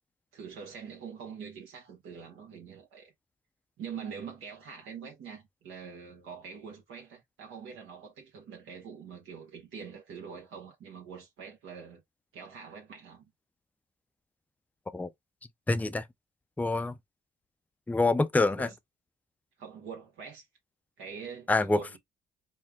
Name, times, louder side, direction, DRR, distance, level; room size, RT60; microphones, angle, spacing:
voice 1, 0.3-3.1 3.8-12.0 12.3-13.2 18.4-18.7 19.6-20.4 21.0-22.0, right 6 dB, 85° right, 1.2 m, -44 dB
voice 2, 15.7-16.0 16.6-16.9 17.9-18.7 21.5-22.0, left 3 dB, 10° left, 0.4 m, -26 dB
4.4 x 2.1 x 3.5 m
cardioid pair, 90°, 20 cm